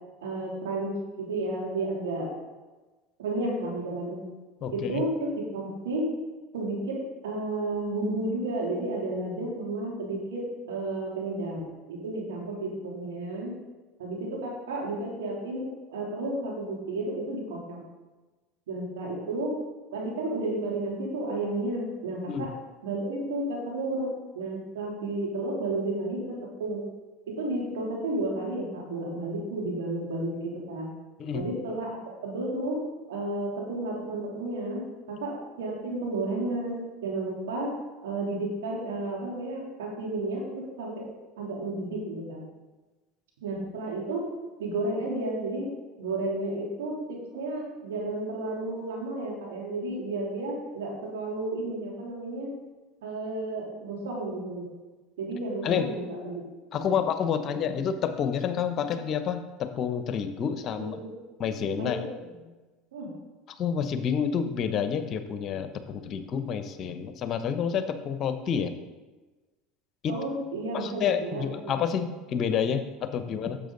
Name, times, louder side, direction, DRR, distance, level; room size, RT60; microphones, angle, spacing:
voice 1, 0.2-2.3 3.2-4.2 4.7-6.3 6.5-11.6 11.9-13.5 14.0-17.8 18.7-19.5 19.9-22.5 22.8-26.9 27.3-30.9 31.3-31.9 32.2-37.7 38.0-41.0 41.4-42.4 43.4-45.7 46.0-52.5 53.0-54.7 55.2-56.4 56.7-57.0 57.5-57.8 60.7-61.1 61.8-62.4 62.9-63.1 70.1-71.7, right 2 dB, 80° right, -3 dB, 3.0 m, -32 dB
voice 2, 4.6-5.0 22.3-22.5 31.2-31.5 55.6-55.9 56.7-61.0 61.4-62.0 63.6-68.7 70.0-70.1 70.7-73.6, left 7 dB, 45° left, 10 dB, 0.9 m, -29 dB
10.0 x 7.2 x 4.0 m, 1.2 s
hypercardioid pair, 80°, 0 cm